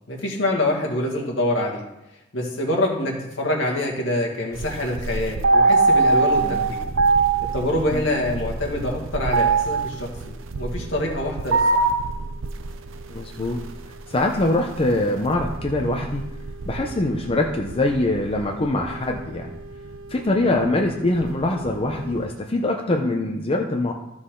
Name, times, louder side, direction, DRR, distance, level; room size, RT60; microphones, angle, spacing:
voice 1, 0.1-1.9 2.3-6.9 7.5-11.9 20.4-20.5, left 1 dB, 70° left, -1 dB, 2.0 m, -25 dB
sound 1, 4.5-22.3, right 3 dB, 90° right, 0.6 m, -24 dB
voice 2, 13.1-13.6 14.1-16.2 16.7-19.6 20.1-23.9, left 2 dB, 30° left, 2 dB, 0.7 m, -23 dB
13.0 x 6.1 x 3.8 m, 0.91 s
head